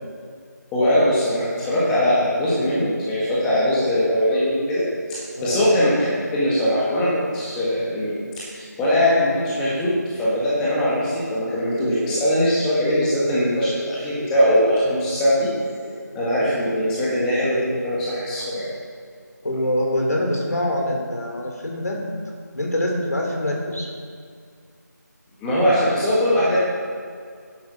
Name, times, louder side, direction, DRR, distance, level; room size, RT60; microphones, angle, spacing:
voice 1, 0.7-4.8 5.1-5.9 6.3-8.1 8.5-15.5 15.8-15.9 16.1-18.6 25.4-26.6, equal, 5° left, -9 dB, 1.7 m, -21 dB
voice 2, 19.4-22.0 22.5-23.9, left 1 dB, 60° left, 0 dB, 3.6 m, -24 dB
11.5 x 10.5 x 6.1 m, 2.2 s
figure-of-eight pair, 165°, 10 cm